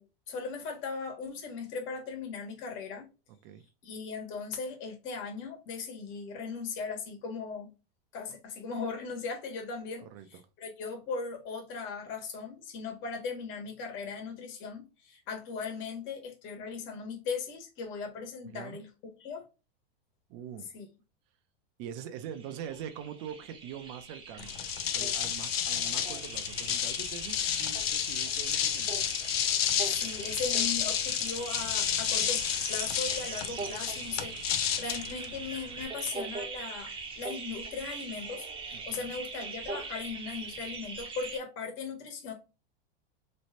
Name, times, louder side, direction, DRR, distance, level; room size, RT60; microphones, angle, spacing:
voice 1, 0.0-3.0 3.8-7.7 8.1-10.0 10.3-18.9 19.2-19.4 20.7-20.9 29.8-32.4 32.7-42.3, left 5 dB, 40° left, 1.5 m, -38 dB
voice 2, 10.0-10.4 18.4-18.8 20.3-20.7 21.8-24.5 24.9-29.1 38.7-39.1, right 9 dB, 45° right, 0.7 m, -43 dB
sound 1, 22.2-41.4, right 4 dB, 15° right, 0.9 m, -41 dB
sound 2, 24.4-35.8, left 9 dB, 90° left, 0.7 m, -31 dB
3.2 x 3.1 x 2.7 m
supercardioid pair, 135°, 29 cm